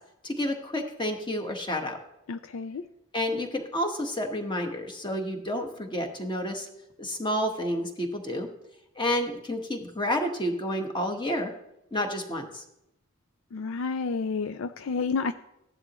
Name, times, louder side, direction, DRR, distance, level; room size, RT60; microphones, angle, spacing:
voice 1, 0.2-2.0 3.1-6.7 7.0-8.5 9.0-11.5 11.9-12.6, left 1 dB, 20° left, 4 dB, 1.3 m, -30 dB
voice 2, 2.3-2.8 13.5-15.3, left 4 dB, 65° left, 11 dB, 0.4 m, -30 dB
15.0 x 11.0 x 3.1 m, 0.84 s
head